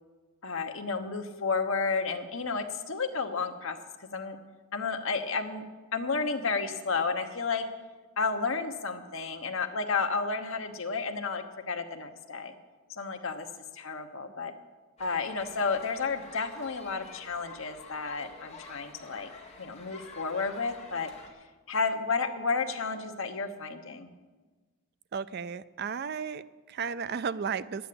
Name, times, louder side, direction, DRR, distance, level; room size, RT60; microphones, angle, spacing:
voice 1, 0.4-4.4 4.7-5.6 5.9-7.6 8.2-12.5 12.9-13.5 13.7-14.5 15.0-19.3 19.6-21.1 21.7-24.1, left 4 dB, 60° left, 6 dB, 1.1 m, -32 dB
sound 1, 15.0-21.3, left 4 dB, 30° left, 1.6 m, -49 dB
voice 2, 25.1-27.9, right 6 dB, 45° right, 15 dB, 0.3 m, -34 dB
11.0 x 9.2 x 8.5 m, 1.3 s
head